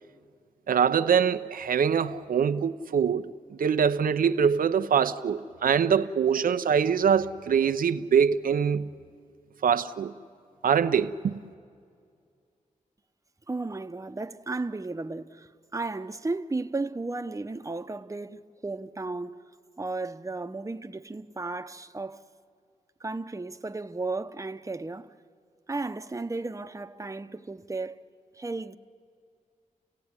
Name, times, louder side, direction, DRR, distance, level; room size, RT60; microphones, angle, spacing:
voice 1, 0.7-3.3 3.6-8.9 9.6-10.1 10.6-11.3, right 7 dB, 85° right, 0.8 m, -24 dB
voice 2, 13.5-19.4 19.8-22.2 23.0-25.1 25.7-28.0 28.4-28.8, right 3 dB, 20° right, 0.9 m, -34 dB
30.0 x 16.5 x 9.7 m
cardioid pair, 60°, 14 cm